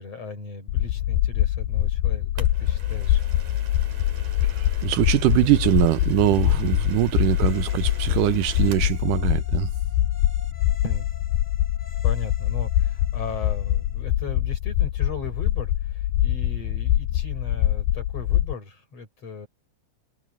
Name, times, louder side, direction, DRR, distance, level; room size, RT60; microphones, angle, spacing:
voice 1, 0.0-3.2 10.8-11.1 12.0-19.5, left 3 dB, 45° left, 7.6 m, -37 dB
sound 1, 0.7-18.5, left 13 dB, 80° left, 2.2 m, -24 dB
sound 2, 2.4-9.0, right 7 dB, 65° right, 4.5 m, -45 dB
voice 2, 4.4-9.7, right 17 dB, 80° right, 2.1 m, -22 dB
sound 3, 7.3-14.0, left 4 dB, 20° left, 5.8 m, -49 dB
omnidirectional pair, 3.9 m